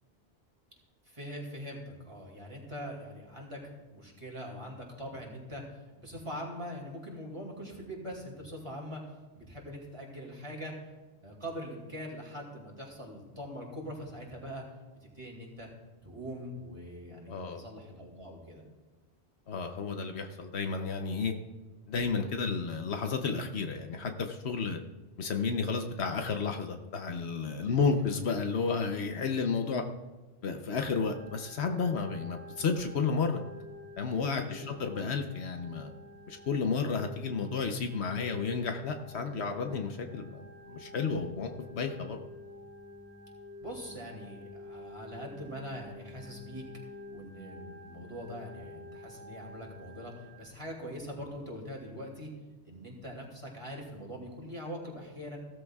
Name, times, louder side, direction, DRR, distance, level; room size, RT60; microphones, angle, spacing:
voice 1, 1.0-5.6 6.0-9.0 9.3-10.7 11.2-14.6 15.0-15.7 16.0-18.6 27.6-27.8 34.4-34.8 43.6-46.6 47.1-52.3 52.6-55.4, equal, 25° right, -1 dB, 2.5 m, -42 dB
voice 2, 17.3-17.6 19.5-21.3 21.9-24.8 25.2-29.8 30.4-33.4 34.0-35.9 36.3-42.2, left 5 dB, 70° left, 5 dB, 1.1 m, -32 dB
Organ, 30.8-50.5, left 1 dB, 80° right, 2.2 m, -49 dB
16.0 x 13.5 x 2.4 m, 1.2 s
omnidirectional pair, 1.1 m